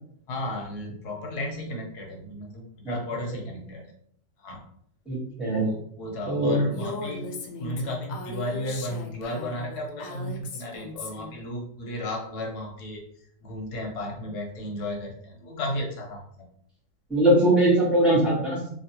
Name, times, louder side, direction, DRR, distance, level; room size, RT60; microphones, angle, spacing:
voice 1, 0.3-3.9 4.4-4.6 5.5-7.3 7.6-13.0 13.4-16.5, left 1 dB, 65° left, 0 dB, 1.2 m, -34 dB
voice 2, 5.1-5.7 6.3-6.5 17.1-18.6, right 1 dB, ahead, -7 dB, 0.8 m, -21 dB
Female speech woman speaking, 6.7-11.4, left 4 dB, 90° left, 1.3 m, -38 dB
3.1 x 2.7 x 2.8 m, 0.67 s
omnidirectional pair, 2.0 m